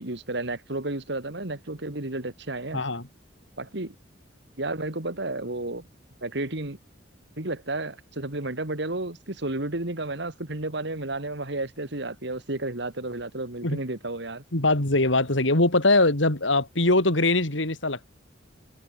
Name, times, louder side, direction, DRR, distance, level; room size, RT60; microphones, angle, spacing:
voice 1, 0.0-2.8 3.6-3.9 4.6-5.8 6.2-6.8 7.4-14.4, right 2 dB, 65° right, 2.5 m, -32 dB
voice 2, 2.7-3.1 13.6-13.8 14.5-18.1, left 2 dB, 75° left, 3.6 m, -22 dB
head